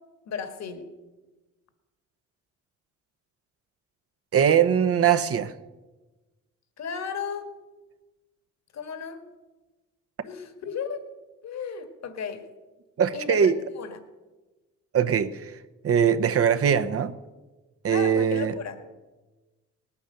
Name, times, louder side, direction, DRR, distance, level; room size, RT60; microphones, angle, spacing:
voice 1, 0.3-0.9 6.8-7.5 8.7-9.3 10.2-11.1 11.4-12.5 13.1-14.0 17.9-18.8, left 6 dB, 60° left, 8 dB, 1.8 m, -34 dB
voice 2, 4.3-5.5 13.0-13.6 14.9-15.5 15.8-17.1 17.8-18.6, right 8 dB, 50° right, 11 dB, 1.0 m, -21 dB
19.0 x 8.5 x 6.7 m, 1.2 s
cardioid pair, 90°, 30 cm